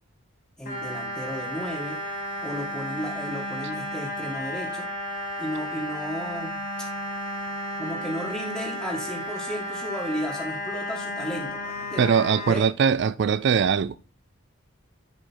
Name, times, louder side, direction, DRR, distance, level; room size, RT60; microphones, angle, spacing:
voice 1, 0.6-2.0 2.4-4.9 5.4-6.6 7.8-12.0 12.5-12.7, equal, 5° left, 1.8 m, -34 dB
sound 1, 0.7-12.5, equal, 40° left, 1.8 m, -33 dB
voice 2, 12.0-14.0, right 6 dB, 55° right, 0.3 m, -21 dB
10.5 x 5.1 x 4.5 m
head